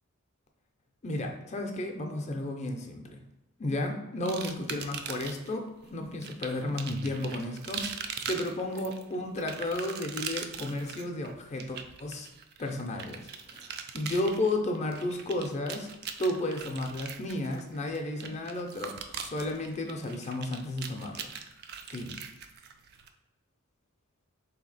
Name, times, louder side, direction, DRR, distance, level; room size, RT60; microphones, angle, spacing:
voice 1, 1.0-3.2 3.6-12.3 12.6-13.2 13.5-15.9 16.2-21.3 21.9-22.2, left 1 dB, 30° left, 3 dB, 0.5 m, -33 dB
sound 1, 4.3-5.5 6.2-23.1, right 7 dB, 45° right, 0.3 m, -41 dB
3.5 x 2.8 x 4.0 m, 0.91 s
head